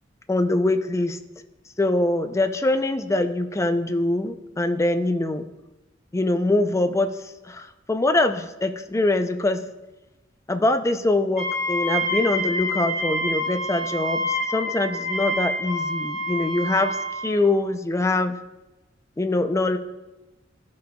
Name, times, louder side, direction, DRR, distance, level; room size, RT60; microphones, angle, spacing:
voice 1, 0.3-1.2 1.8-5.5 6.1-9.6 10.5-17.0 17.2-18.4 19.2-19.8, left 2 dB, 15° left, 8 dB, 0.4 m, -23 dB
Wind instrument woodwind instrument, 11.4-17.3, equal, 45° left, 2.1 m, -27 dB
13.5 x 5.2 x 2.2 m, 1.1 s
head